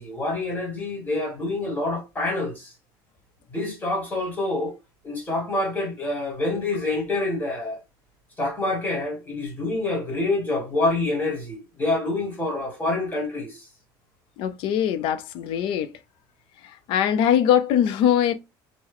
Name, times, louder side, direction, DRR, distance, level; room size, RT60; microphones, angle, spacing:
voice 1, 0.0-2.7 3.5-4.7 5.0-7.8 8.4-13.6, left 2 dB, 15° left, 1.7 m, -27 dB
voice 2, 14.4-15.9 16.6-18.3, left 9 dB, 65° left, 0.5 m, -22 dB
3.0 x 2.1 x 3.7 m
cardioid pair, 130°, 10 cm